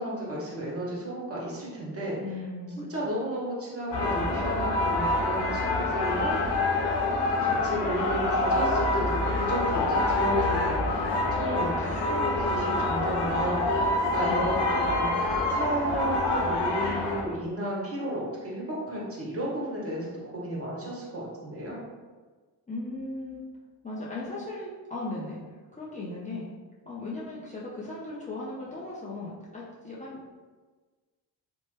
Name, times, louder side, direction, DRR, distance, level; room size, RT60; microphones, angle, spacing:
voice 1, 0.0-2.2 2.8-6.6 7.4-21.8, right 1 dB, 35° right, -5 dB, 1.2 m, -33 dB
voice 2, 2.2-3.1 11.8-12.3 12.7-13.7 14.3-14.6 22.7-23.4 23.8-25.4 25.7-26.5 26.9-30.3, left 2 dB, 20° left, -7 dB, 0.6 m, -38 dB
sound 1, 3.9-17.2, left 2 dB, 75° left, 0.7 m, -26 dB
2.9 x 2.2 x 3.1 m, 1.4 s
supercardioid pair, 60°, 42 cm